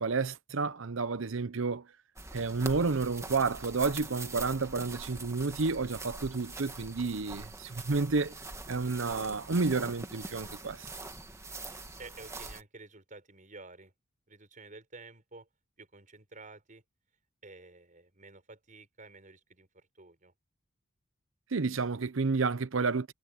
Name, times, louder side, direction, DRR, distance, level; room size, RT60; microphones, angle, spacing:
voice 1, 0.0-1.9 2.3-8.3 8.7-10.9 21.5-23.1, right 4 dB, 75° right, 0.8 m, -30 dB
sound 1, 2.2-12.6, right 3 dB, 15° right, 1.8 m, -43 dB
voice 2, 12.0-13.9 14.3-15.5 15.8-16.8 17.4-20.3, right 3 dB, 40° right, 5.2 m, -51 dB
head